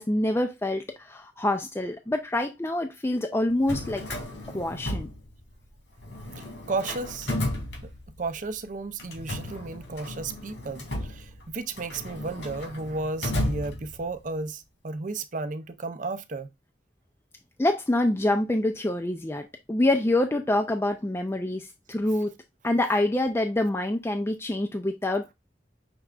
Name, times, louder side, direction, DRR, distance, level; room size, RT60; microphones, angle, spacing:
voice 1, 0.0-4.0 4.5-5.1 17.6-22.3 22.6-25.3, left 1 dB, 15° left, 0.4 m, -26 dB
Drawer open or close, 3.5-5.7 6.0-8.4 9.0-14.3, left 1 dB, 80° left, 2.4 m, -34 dB
voice 2, 6.3-7.6 8.2-16.5, right 3 dB, 45° right, 0.5 m, -33 dB
6.0 x 3.3 x 2.4 m
head